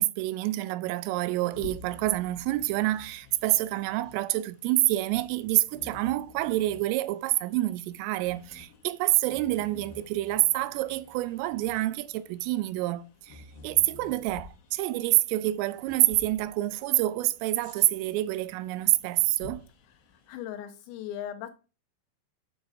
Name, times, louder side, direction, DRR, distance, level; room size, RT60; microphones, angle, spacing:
voice 1, 0.0-19.7, right 17 dB, 85° right, 3.1 m, -27 dB
Bird vocalization bird call bird song, 0.9-20.4, left 5 dB, 70° left, 3.5 m, -51 dB
voice 2, 20.3-21.5, left 10 dB, 90° left, 3.7 m, -37 dB
9.2 x 7.3 x 2.6 m
omnidirectional pair, 5.8 m